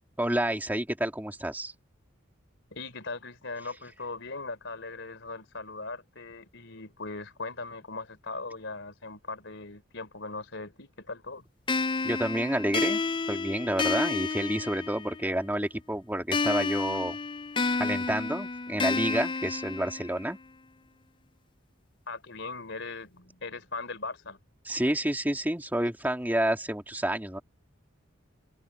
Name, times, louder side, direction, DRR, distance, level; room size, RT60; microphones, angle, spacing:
voice 1, 0.2-1.7 12.0-13.0 13.3-17.2 17.8-20.4 24.7-27.4, right 1 dB, 10° right, 2.6 m, -29 dB
voice 2, 2.7-11.5 22.1-24.4, left 3 dB, 65° left, 4.1 m, -39 dB
sound 1, 11.7-15.3 16.3-20.3, left 4 dB, 25° left, 0.4 m, -30 dB
head